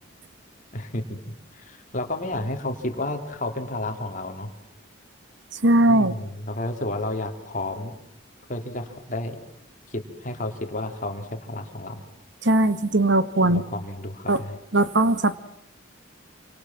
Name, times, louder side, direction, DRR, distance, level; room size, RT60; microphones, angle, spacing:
voice 1, 0.7-1.2 1.5-4.5 5.9-8.0 8.5-9.4 9.9-12.0 13.4-14.6, left 1 dB, 40° left, 4 dB, 3.6 m, -31 dB
voice 2, 5.6-6.1 12.4-13.6 14.3-14.4 14.7-15.4, right 1 dB, 60° right, 13 dB, 1.7 m, -19 dB
29.0 x 26.5 x 7.5 m, 0.77 s
head